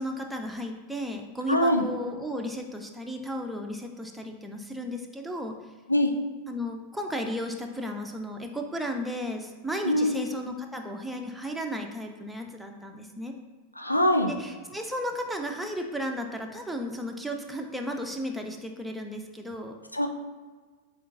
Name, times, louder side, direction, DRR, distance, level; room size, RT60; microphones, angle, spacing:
voice 1, 0.0-5.6 6.5-13.3 14.3-19.8, equal, ahead, 2 dB, 0.4 m, -34 dB
voice 2, 1.5-1.8 5.9-6.1 9.8-10.2 13.8-14.3 19.9-20.1, equal, 85° left, 5 dB, 0.4 m, -23 dB
7.3 x 2.5 x 2.5 m, 1.5 s
figure-of-eight pair, 90°, 0 cm